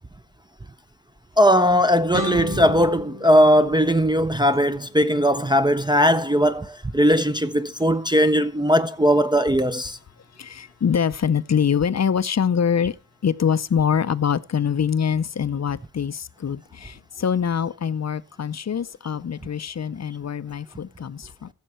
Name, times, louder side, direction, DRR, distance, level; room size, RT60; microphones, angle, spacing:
voice 1, 1.4-10.0, equal, 10° right, 0.5 m, -19 dB
sound 1, 2.1-5.1, equal, 85° right, 5.3 m, -35 dB
voice 2, 10.4-12.9 13.2-21.5, left 7 dB, 45° left, 0.6 m, -24 dB
15.0 x 6.6 x 4.3 m
wide cardioid pair, 105°, 39 cm